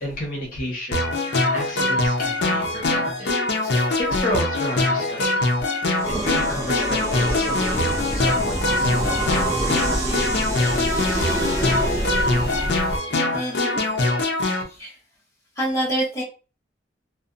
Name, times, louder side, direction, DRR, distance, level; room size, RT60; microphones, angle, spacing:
voice 1, 0.0-3.3 3.7-5.5 5.8-11.5, equal, 50° left, -3 dB, 1.0 m, -32 dB
sound 1, 0.9-14.6, left 2 dB, 70° left, 0.5 m, -23 dB
sound 2, 5.9-12.9, right 1 dB, 15° right, 0.5 m, -28 dB
sound 3, 7.6-13.0, equal, 60° right, 0.9 m, -30 dB
voice 2, 13.3-13.8 14.7-14.9 15.6-16.2, right 1 dB, 15° left, -6 dB, 1.0 m, -26 dB
2.6 x 2.2 x 2.5 m, 0.34 s
head